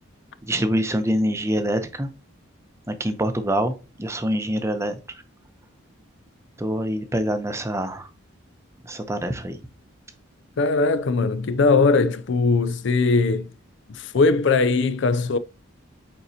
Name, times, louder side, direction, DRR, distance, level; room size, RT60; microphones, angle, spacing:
voice 1, 0.4-2.1 2.9-5.0 6.6-8.1 8.8-9.6, equal, 15° right, 0.7 m, -25 dB
voice 2, 10.6-13.5 13.9-15.4, left 3 dB, 55° left, 0.4 m, -20 dB
9.0 x 4.1 x 2.8 m
head